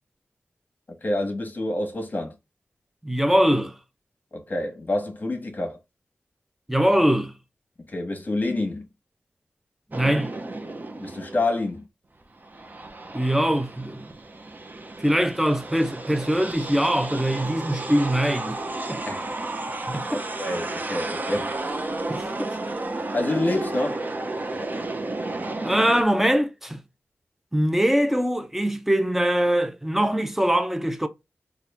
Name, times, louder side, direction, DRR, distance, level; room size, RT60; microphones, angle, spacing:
voice 1, 1.0-2.3 4.3-5.8 7.9-8.8 11.0-11.8 19.1-19.2 20.1-21.5 22.4-22.5 23.1-24.1, left 2 dB, 40° left, 1.2 m, -27 dB
voice 2, 3.0-3.7 6.7-7.3 9.9-10.3 13.1-14.1 15.0-18.6 18.9-19.0 19.9-20.2 22.1-22.3 25.6-26.8 27.5-31.1, equal, 5° right, 0.6 m, -22 dB
sound 1, 9.9-11.7 12.2-26.0, right 2 dB, 40° right, 0.7 m, -32 dB
4.2 x 2.4 x 3.4 m
cardioid pair, 60°, 5 cm